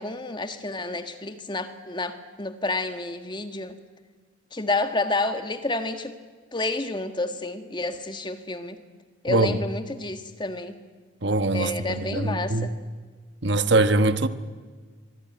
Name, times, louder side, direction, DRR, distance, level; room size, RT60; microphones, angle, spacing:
voice 1, 0.0-3.8 4.5-6.1 6.5-8.8 9.2-10.8 11.5-12.7, left 2 dB, 25° left, 1.6 m, -29 dB
voice 2, 9.3-9.6 11.2-12.7 13.4-14.3, right 2 dB, 55° right, 1.2 m, -22 dB
25.0 x 22.5 x 9.8 m
head